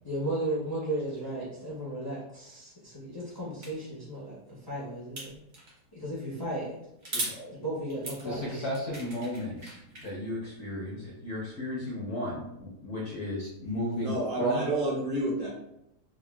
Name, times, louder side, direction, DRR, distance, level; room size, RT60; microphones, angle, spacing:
voice 1, 0.0-4.4 4.6-5.4 5.9-6.7 7.5-8.7, right 1 dB, 40° left, -8 dB, 0.3 m, -35 dB
sound 1, 3.6-3.7 5.2-5.8 7.0-7.4 7.9-10.1, right 2 dB, 80° right, 0.4 m, -38 dB
voice 2, 7.1-7.6 8.2-14.7, left 1 dB, 65° left, -4 dB, 0.7 m, -34 dB
voice 3, 13.9-15.5, right 1 dB, 60° right, -3 dB, 1.1 m, -30 dB
3.5 x 2.1 x 2.2 m, 0.81 s
omnidirectional pair, 1.8 m